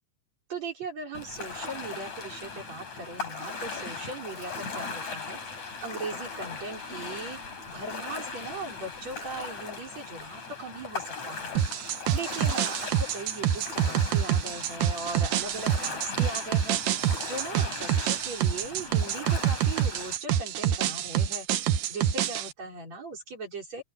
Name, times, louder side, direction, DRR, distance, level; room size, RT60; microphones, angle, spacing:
voice 1, 0.5-7.4 7.7-23.8, right 3 dB, 55° right, 6.6 m, -39 dB
Ocean, 1.1-20.2, left 4 dB, 60° left, 6.7 m, -38 dB
sound 1, 11.6-22.5, right 10 dB, 80° right, 2.8 m, -27 dB
open air
omnidirectional pair, 3.7 m